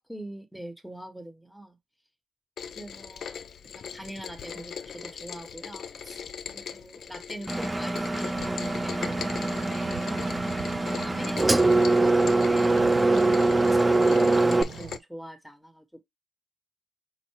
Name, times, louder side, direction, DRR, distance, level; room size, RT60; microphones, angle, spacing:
voice 1, 0.1-1.8 2.7-3.3 3.7-6.2 6.5-10.4 10.8-16.0, right 1 dB, ahead, 1.0 m, -42 dB
Rain, 2.6-15.0, left 7 dB, 70° left, 0.6 m, -40 dB
Engine, 7.5-14.6, right 2 dB, 15° right, 0.4 m, -23 dB
sound 1, 8.3-15.0, right 9 dB, 85° right, 0.5 m, -43 dB
5.5 x 2.1 x 4.4 m
cardioid pair, 105°, 0 cm